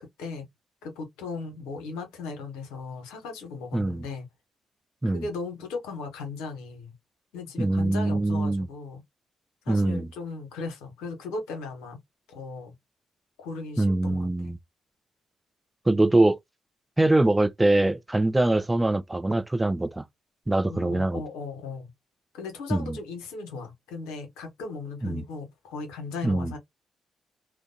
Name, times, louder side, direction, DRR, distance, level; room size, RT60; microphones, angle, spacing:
voice 1, 0.8-4.3 5.0-6.9 7.3-9.0 9.6-12.0 12.3-12.7 13.4-14.5 20.7-21.9 22.3-26.6, left 4 dB, 80° left, 0.9 m, -37 dB
voice 2, 3.7-4.1 5.0-5.3 7.6-8.7 9.7-10.1 13.8-14.6 15.9-16.4 17.0-20.0 20.5-21.2 22.7-23.0 25.0-25.2 26.2-26.5, right 2 dB, 15° right, 0.4 m, -23 dB
2.5 x 2.1 x 2.6 m
hypercardioid pair, 45°, 0 cm